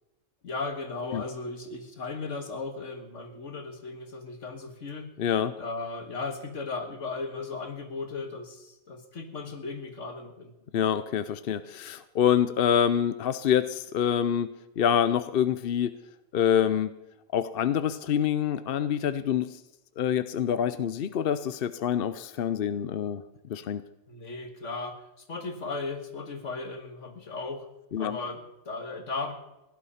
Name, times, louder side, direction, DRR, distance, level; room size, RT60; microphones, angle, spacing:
voice 1, 0.4-5.1 5.6-10.5 22.7-22.8 24.1-25.0 25.3-27.7 28.0-29.3, left 3 dB, 80° left, 7 dB, 2.0 m, -36 dB
voice 2, 5.2-5.5 10.7-15.9 16.3-16.9 17.3-19.6 20.0-23.2 23.5-23.8 27.9-28.2, left 9 dB, 55° left, 12 dB, 0.7 m, -26 dB
16.5 x 11.5 x 5.7 m, 0.96 s
omnidirectional pair, 1.3 m